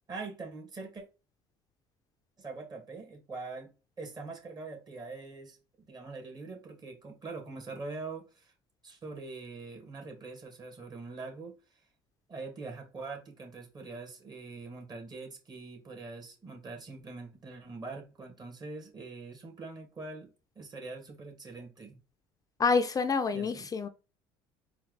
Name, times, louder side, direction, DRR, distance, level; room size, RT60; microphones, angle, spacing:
voice 1, 0.1-1.0 2.4-3.7 4.0-8.5 8.8-11.6 12.3-22.0 23.3-23.7, right 3 dB, 35° right, 2.4 m, -43 dB
voice 2, 22.6-23.9, left 5 dB, 30° left, 0.5 m, -27 dB
4.4 x 2.8 x 3.9 m
supercardioid pair, 80°, 12 cm